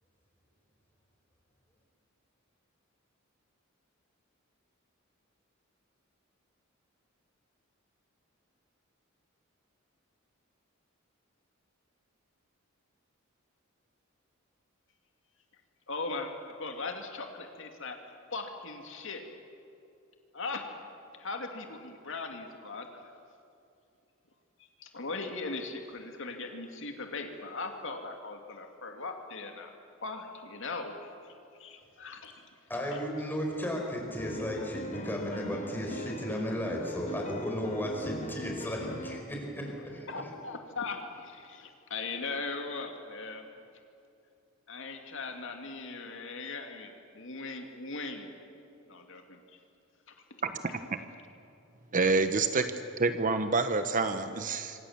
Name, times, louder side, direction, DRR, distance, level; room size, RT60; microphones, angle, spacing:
voice 1, 15.9-18.0 18.3-19.3 20.3-20.7 21.2-23.0 24.6-29.7 30.0-31.3 31.6-32.5 32.9-33.0 40.1-43.4 44.7-46.9 47.1-48.3 48.9-49.4, left 3 dB, 65° left, 4 dB, 2.4 m, -39 dB
voice 2, 32.7-40.1, equal, 10° left, 0 dB, 5.5 m, -34 dB
sound 1, 34.2-39.2, left 1 dB, 35° left, 1.4 m, -41 dB
voice 3, 50.4-51.0 51.9-52.7 53.0-54.8, right 3 dB, 40° right, 9 dB, 1.0 m, -28 dB
27.0 x 25.5 x 7.4 m, 2.6 s
head